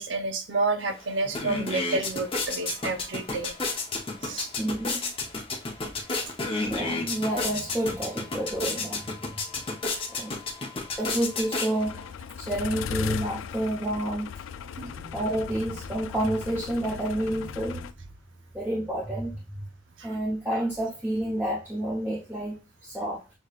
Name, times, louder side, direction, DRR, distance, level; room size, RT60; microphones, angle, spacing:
voice 1, 0.0-3.5 4.2-4.5 14.8-14.9 20.0-20.1, right 3 dB, 75° right, 0.8 m, -29 dB
sound 1, 0.8-0.9 1.2-12.1, left 3 dB, 25° left, 0.7 m, -32 dB
voice 2, 4.6-5.1 6.6-9.1 10.1-10.4 11.0-12.0 12.4-14.4 14.7-17.9 18.5-19.6 20.0-23.2, right 1 dB, 10° right, 0.9 m, -30 dB
sound 2, 11.8-17.9, left 7 dB, 80° left, 0.3 m, -37 dB
6.4 x 3.1 x 2.4 m
head